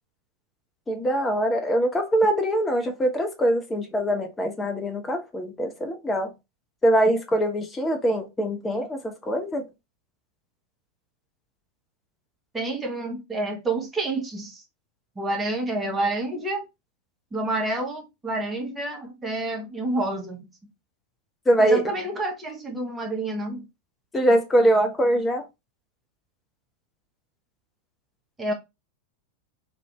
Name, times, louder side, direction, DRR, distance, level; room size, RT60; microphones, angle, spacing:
voice 1, 0.9-6.3 6.8-9.7 21.5-21.8 24.1-25.4, right 1 dB, 15° left, 0.6 m, -23 dB
voice 2, 12.5-14.6 15.2-16.7 17.3-20.5 21.6-23.7 28.4-28.5, right 2 dB, 15° right, 0.8 m, -28 dB
2.6 x 2.1 x 2.8 m
figure-of-eight pair, 90°, 0 cm